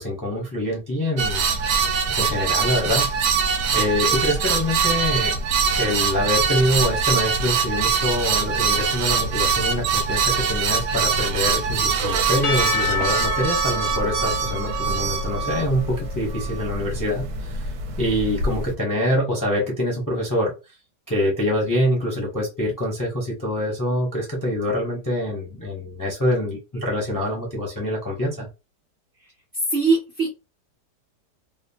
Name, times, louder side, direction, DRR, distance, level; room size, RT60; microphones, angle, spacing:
voice 1, 0.0-1.5 2.1-5.4 5.8-17.6 18.0-20.5 21.1-28.5, left 1 dB, 20° left, -2 dB, 0.4 m, -25 dB
sound 1, 1.2-18.7, right 5 dB, 75° right, 1.1 m, -23 dB
Percussion / Church bell, 12.4-16.6, left 1 dB, 65° left, 0.6 m, -28 dB
voice 2, 29.7-30.3, right 4 dB, 50° right, -3 dB, 0.7 m, -20 dB
2.7 x 2.1 x 2.7 m, 0.27 s
omnidirectional pair, 1.8 m